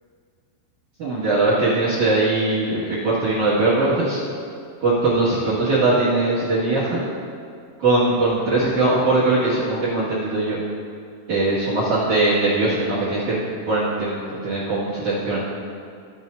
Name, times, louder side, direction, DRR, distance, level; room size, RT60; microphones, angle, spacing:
voice 1, 1.0-4.2 4.8-7.0 7.8-10.6 11.3-15.4, right 2 dB, 55° right, -8 dB, 2.5 m, -20 dB
16.5 x 9.2 x 2.7 m, 2.3 s
omnidirectional pair, 5.7 m